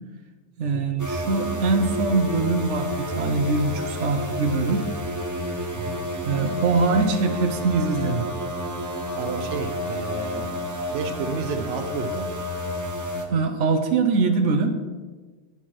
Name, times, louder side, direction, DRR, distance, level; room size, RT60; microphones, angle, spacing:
voice 1, 0.6-4.9 6.2-8.3 13.3-14.8, right 3 dB, 85° right, 6 dB, 1.1 m, -23 dB
sound 1, 1.0-13.3, equal, 15° right, 0.9 m, -30 dB
voice 2, 9.1-10.5 10.9-12.3, right 5 dB, 65° right, 6 dB, 1.1 m, -31 dB
11.0 x 5.8 x 4.6 m, 1.3 s
omnidirectional pair, 1.2 m